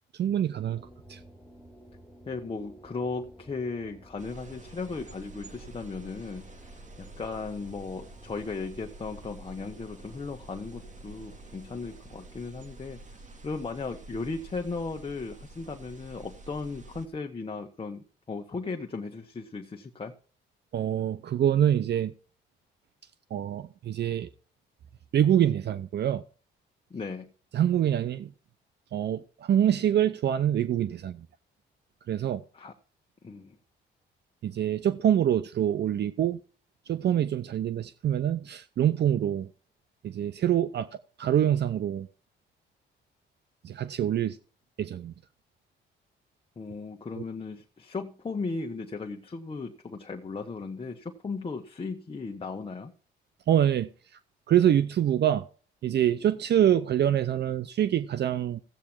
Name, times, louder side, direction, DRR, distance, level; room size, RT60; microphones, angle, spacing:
voice 1, 0.1-0.8 1.1-1.2 20.7-22.1 23.3-24.3 25.1-26.2 27.5-28.3 28.9-31.3 32.1-32.4 34.4-36.4 36.9-39.5 40.0-40.9 41.2-42.1 43.6-44.4 44.8-45.1 53.5-53.9 54.5-55.5 55.8-58.6, right 10 dB, 60° right, 0.7 m, -25 dB
sound 1, 0.7-12.4, right 1 dB, 5° left, 3.1 m, -54 dB
voice 2, 2.3-20.1 26.9-27.3 32.5-32.7 33.2-33.6 46.6-52.9, left 4 dB, 25° left, 1.3 m, -36 dB
sound 2, 4.2-17.1, right 2 dB, 40° right, 2.5 m, -48 dB
14.5 x 8.5 x 4.6 m
cardioid pair, 90°, 20 cm